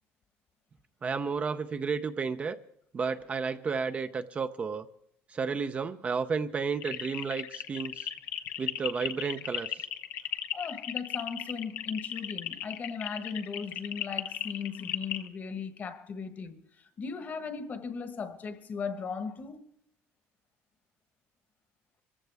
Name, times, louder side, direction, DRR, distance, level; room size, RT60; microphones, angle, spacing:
voice 1, 1.0-2.6 2.9-4.9 5.3-8.1 8.6-9.8, right 5 dB, 30° right, 0.6 m, -32 dB
sound 1, 6.8-15.3, left 12 dB, 85° left, 0.9 m, -36 dB
voice 2, 10.5-19.7, left 5 dB, 35° left, 1.3 m, -37 dB
24.5 x 15.0 x 3.4 m
cardioid pair, 130°, 5 cm